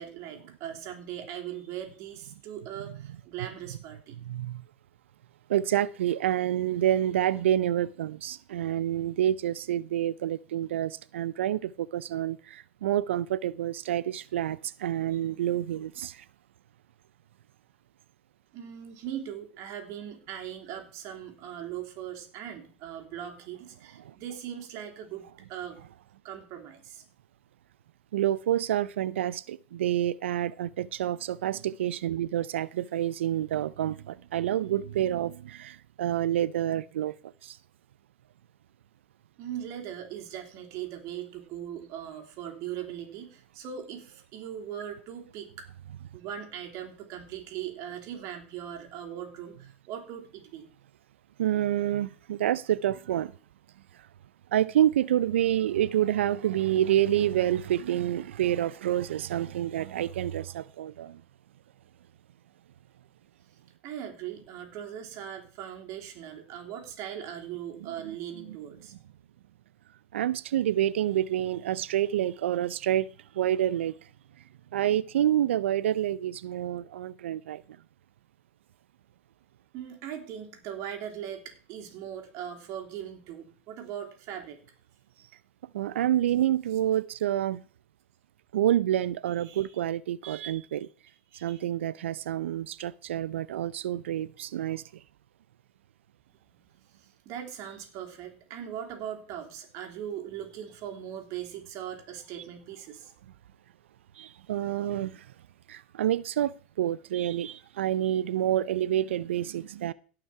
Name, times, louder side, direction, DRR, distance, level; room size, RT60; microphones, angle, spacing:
voice 1, 0.0-4.1 18.5-25.8 26.2-27.0 39.4-45.6 46.1-50.7 63.8-68.9 79.7-84.6 89.4-89.7 91.3-91.6 96.5-96.6 97.0-103.1, right 10 dB, 50° right, 3.1 m, -40 dB
voice 2, 4.2-4.6 5.5-16.2 24.0-24.1 28.1-37.2 37.4-37.6 51.4-53.3 54.5-61.2 68.5-68.6 70.1-73.1 73.3-73.9 74.7-77.6 85.7-87.6 88.5-90.9 91.4-94.8 102.3-102.4 104.2-105.3 105.7-109.9, right 11 dB, 80° right, 0.5 m, -28 dB
17.0 x 5.8 x 4.7 m
hypercardioid pair, 100°, 6 cm